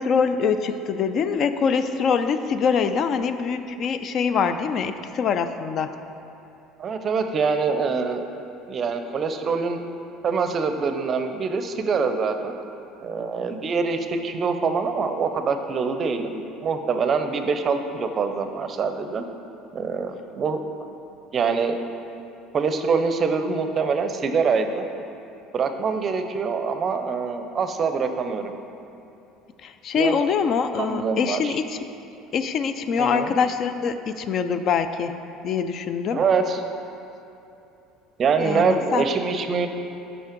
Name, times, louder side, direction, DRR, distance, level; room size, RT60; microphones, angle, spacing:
voice 1, 0.0-5.9 29.6-31.8 32.3-35.2 35.4-36.2 38.4-39.0, left 6 dB, 50° left, 10 dB, 0.3 m, -24 dB
voice 2, 6.8-8.3 8.7-9.8 10.2-12.5 13.0-19.2 19.7-20.6 21.3-21.8 22.5-24.9 25.5-28.5 30.0-30.2 30.8-31.6 33.0-33.3 36.1-36.6 38.2-39.7, right 5 dB, 40° right, 7 dB, 0.5 m, -24 dB
5.5 x 5.4 x 5.1 m, 2.8 s
supercardioid pair, 95°, 0 cm